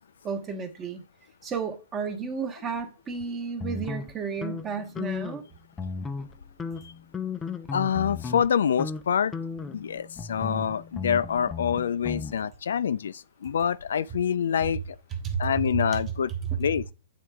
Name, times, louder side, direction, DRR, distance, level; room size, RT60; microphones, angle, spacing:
voice 1, 0.2-1.0 1.4-5.4 14.6-14.7 15.1-16.0 16.3-16.7, right 6 dB, 20° right, 1.0 m, -32 dB
sound 1, 3.6-5.5 5.7-6.3 6.6-8.5 8.8-9.0 9.3-12.3, left 5 dB, 10° left, 0.4 m, -35 dB
voice 2, 7.7-9.3 9.7-14.8 15.4-16.3 16.6-16.9, left 8 dB, 80° left, 0.4 m, -26 dB
8.8 x 3.6 x 3.4 m
hypercardioid pair, 155°, 0 cm